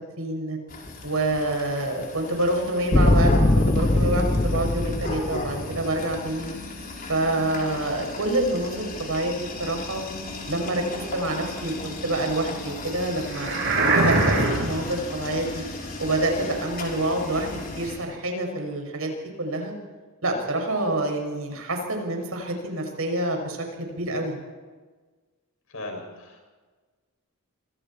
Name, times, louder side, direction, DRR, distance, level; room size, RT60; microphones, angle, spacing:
voice 1, 0.2-0.6 1.0-6.5 7.1-10.0 10.5-13.5 13.9-15.7 16.0-19.7 20.2-24.4, right 1 dB, 80° right, 2 dB, 6.6 m, -27 dB
sound 1, 0.7-18.0, left 2 dB, 45° left, 5.5 m, -37 dB
sound 2, 2.9-6.1, left 1 dB, 25° left, 0.6 m, -21 dB
sound 3, 13.3-14.9, right 2 dB, 60° right, 6.5 m, -22 dB
voice 2, 25.7-26.4, left 2 dB, 75° left, 2 dB, 7.1 m, -37 dB
28.0 x 26.0 x 4.6 m, 1.3 s
head